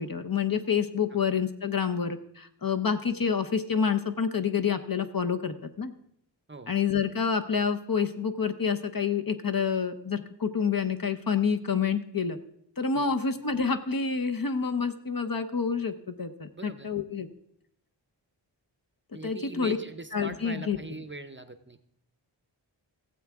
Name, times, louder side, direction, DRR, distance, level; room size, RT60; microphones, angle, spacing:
voice 1, 0.0-5.9 6.7-12.4 12.8-17.3 19.2-19.8 20.1-20.8, left 6 dB, 50° left, 8 dB, 0.8 m, -28 dB
voice 2, 16.5-16.9 19.1-21.8, right 2 dB, 25° right, 11 dB, 0.6 m, -41 dB
16.5 x 7.6 x 3.5 m, 0.72 s
wide cardioid pair, 60°, 46 cm